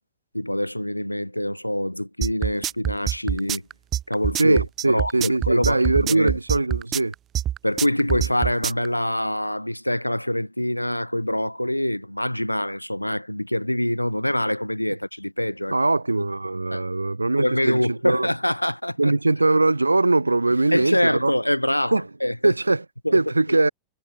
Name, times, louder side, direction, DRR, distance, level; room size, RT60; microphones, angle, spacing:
voice 1, 0.3-3.6 4.1-4.6 4.8-6.4 7.6-15.8 16.7-16.9 17.4-19.1 20.7-22.5 23.0-23.2 23.5-23.6, left 1 dB, 90° left, 0.9 m, -25 dB
sound 1, 2.2-8.9, right 11 dB, 30° right, 0.7 m, -25 dB
voice 2, 4.4-7.1 15.7-18.3 19.0-21.3 21.9-22.0 22.4-22.8 23.1-23.7, right 2 dB, 85° right, 0.3 m, -21 dB
figure-of-eight pair, 90°, 0 cm